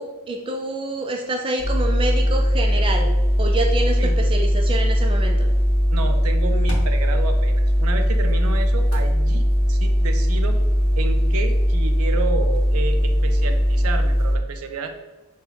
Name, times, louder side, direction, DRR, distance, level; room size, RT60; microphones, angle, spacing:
voice 1, 0.0-5.5, right 2 dB, 25° right, 3 dB, 0.4 m, -27 dB
sound 1, 1.6-14.4, equal, 75° left, 0.8 m, -19 dB
voice 2, 5.9-10.6 11.0-14.9, right 3 dB, 85° right, 6 dB, 0.5 m, -31 dB
4.1 x 2.2 x 3.9 m, 1.1 s
head